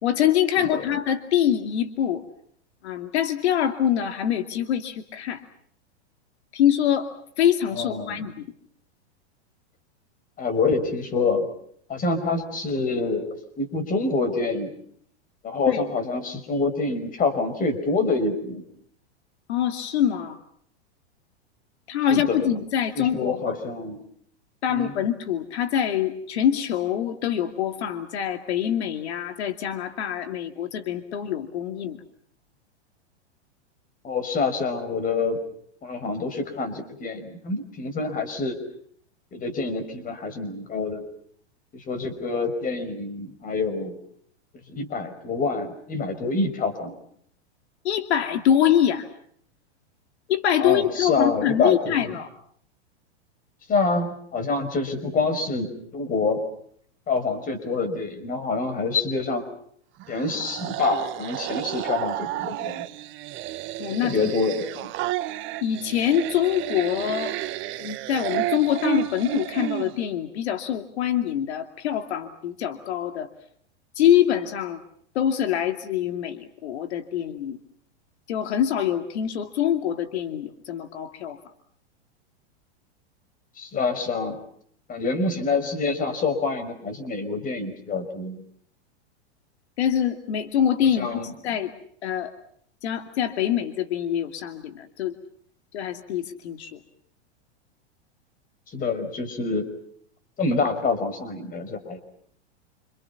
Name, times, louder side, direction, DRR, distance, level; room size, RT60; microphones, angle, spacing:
voice 1, 0.0-2.2 2.8-5.5 6.5-7.1 7.4-8.3 15.7-15.8 19.5-20.4 21.9-23.6 24.6-32.0 47.8-49.1 50.3-52.3 63.8-64.3 65.6-67.4 67.8-73.3 74.0-74.8 75.1-77.6 78.3-81.4 89.8-91.7 92.0-92.3 92.8-95.1 95.7-96.8, left 10 dB, 70° left, 7 dB, 2.6 m, -24 dB
voice 2, 7.8-8.2 10.4-11.5 11.9-14.7 15.4-18.6 22.1-22.5 23.0-24.0 24.7-24.9 34.0-35.4 35.8-38.5 39.3-41.0 41.7-44.0 44.7-47.0 50.6-52.0 53.7-56.4 57.1-59.4 60.1-62.9 64.0-64.9 83.6-84.4 84.9-88.4 91.0-91.3 98.7-99.7 100.4-102.0, left 3 dB, 25° left, 10 dB, 5.6 m, -26 dB
sound 1, 60.0-70.0, right 16 dB, 35° right, 1.5 m, -31 dB
29.5 x 28.0 x 5.9 m, 0.64 s
hypercardioid pair, 130°, 34 cm